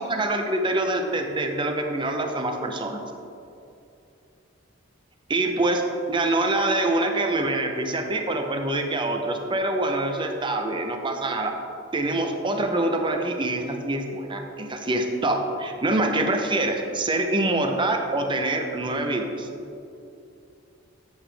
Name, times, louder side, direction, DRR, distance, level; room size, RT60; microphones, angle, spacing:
voice 1, 0.0-3.0 5.3-11.6 11.9-19.5, right 2 dB, 25° right, 4 dB, 0.6 m, -25 dB
8.0 x 7.7 x 3.4 m, 2.7 s
head